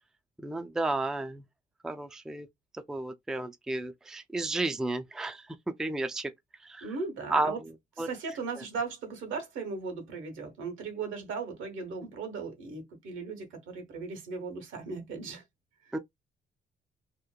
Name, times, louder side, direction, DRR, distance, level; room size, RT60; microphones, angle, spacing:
voice 1, 0.4-1.4 1.8-2.5 2.9-6.3 6.6-6.9 7.3-7.6 8.0-8.1 15.9-16.0, right 2 dB, 5° right, 0.3 m, -32 dB
voice 2, 6.8-7.6 8.0-15.4, right 4 dB, 80° right, 1.1 m, -37 dB
2.8 x 2.1 x 2.2 m
cardioid pair, 90°, 20 cm